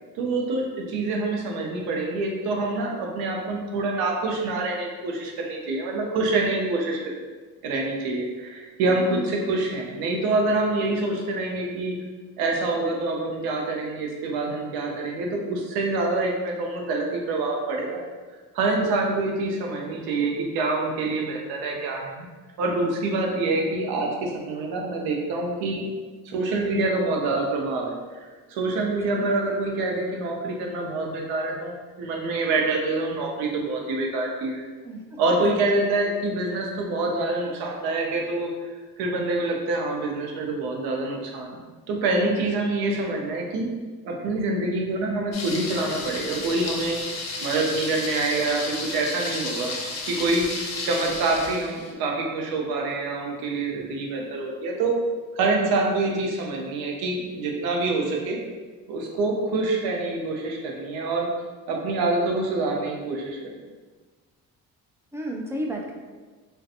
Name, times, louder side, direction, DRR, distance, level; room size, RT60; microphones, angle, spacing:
voice 1, 0.2-7.0 7.6-12.0 12.4-18.0 18.5-22.3 22.6-25.9 26.2-34.6 35.2-38.5 39.0-41.6 41.9-43.7 44.0-47.0 47.4-49.7 50.1-54.9 55.3-58.4 58.9-61.3 61.7-63.4, right 2 dB, 80° right, 0 dB, 0.6 m, -26 dB
voice 2, 9.0-9.4 28.9-29.3 34.8-35.0 42.2-42.5 65.1-65.9, right 1 dB, 10° right, -1 dB, 0.3 m, -33 dB
Thunder, 45.3-51.9, left 3 dB, 45° left, 0.6 m, -33 dB
2.5 x 2.2 x 2.6 m, 1.3 s
supercardioid pair, 75°, 37 cm